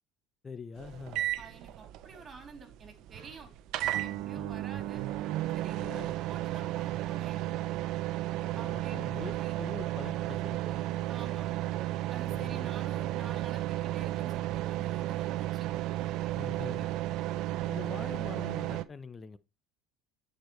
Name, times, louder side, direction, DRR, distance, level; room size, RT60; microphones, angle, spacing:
voice 1, 0.4-1.3 4.3-4.6 5.7-6.1 8.5-10.7 12.3-12.7 16.3-16.9 17.7-19.4, left 5 dB, 25° left, 0.7 m, -44 dB
sound 1, 0.8-18.9, right 15 dB, 60° right, 0.6 m, -33 dB
voice 2, 1.4-3.5 3.9-5.1 5.5-7.5 8.5-9.7 11.1-11.5 12.1-15.7 16.0-16.1, right 4 dB, 35° right, 3.0 m, -49 dB
8.7 x 5.1 x 3.1 m
hypercardioid pair, 80°, 0 cm